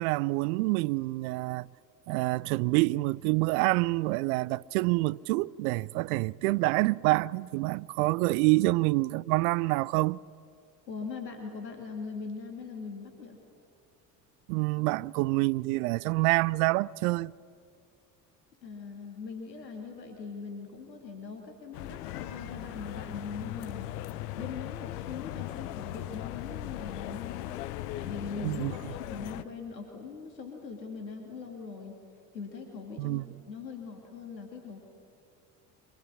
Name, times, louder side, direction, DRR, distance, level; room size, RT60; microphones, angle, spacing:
voice 1, 0.0-1.7 2.1-10.2 14.5-17.3 28.4-28.7 33.0-33.3, right 21 dB, 60° right, 0.6 m, -27 dB
voice 2, 10.9-13.4 18.6-23.9 24.3-27.5 27.9-32.0 32.3-34.8, left 5 dB, 80° left, 2.6 m, -41 dB
sound 1, 21.7-29.4, left 14 dB, 65° left, 0.9 m, -38 dB
25.0 x 22.0 x 9.9 m
figure-of-eight pair, 60°, 49 cm